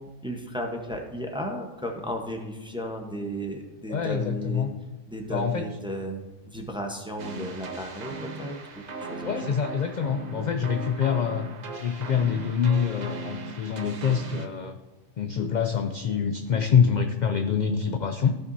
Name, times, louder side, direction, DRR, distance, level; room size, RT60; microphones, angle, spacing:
voice 1, 0.0-4.7 5.1-9.6 10.3-10.5, equal, 5° right, 2 dB, 0.8 m, -34 dB
voice 2, 3.9-4.7 5.3-5.7 9.2-11.5 11.7-14.8 15.2-18.4, left 7 dB, 60° left, 7 dB, 0.4 m, -25 dB
sound 1, 7.2-14.5, right 3 dB, 45° right, 0.7 m, -38 dB
14.0 x 5.8 x 2.7 m, 1.1 s
omnidirectional pair, 1.3 m